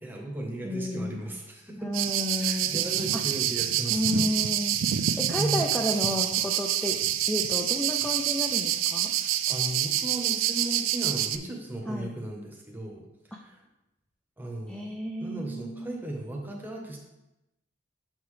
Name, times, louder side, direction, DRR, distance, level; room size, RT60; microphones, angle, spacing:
voice 1, 0.0-1.9 2.3-4.4 4.8-5.7 9.0-13.0 13.3-13.6 14.4-14.9 15.2-17.0, right 1 dB, 10° right, 0 dB, 0.9 m, -36 dB
voice 2, 0.6-1.2 1.8-2.8 3.1-3.2 3.9-4.8 5.2-7.0 7.3-9.1 11.9-12.1 14.7-16.0, left 1 dB, 5° left, 0 dB, 0.4 m, -31 dB
sound 1, 1.9-11.4, right 11 dB, 80° right, 0.4 m, -27 dB
6.9 x 5.6 x 3.2 m, 0.95 s
head